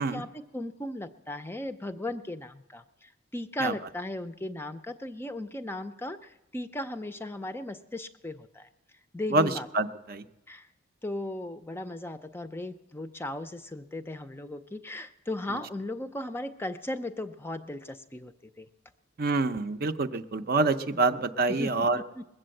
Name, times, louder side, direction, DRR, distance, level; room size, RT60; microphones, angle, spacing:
voice 1, 0.0-8.7 9.1-9.7 10.5-10.7 11.0-18.7 20.9-21.2 21.5-22.2, left 1 dB, 10° left, 9 dB, 0.5 m, -37 dB
voice 2, 9.3-10.2 19.2-22.0, right 3 dB, 50° right, 9 dB, 0.6 m, -26 dB
20.5 x 7.7 x 7.6 m, 1.0 s
head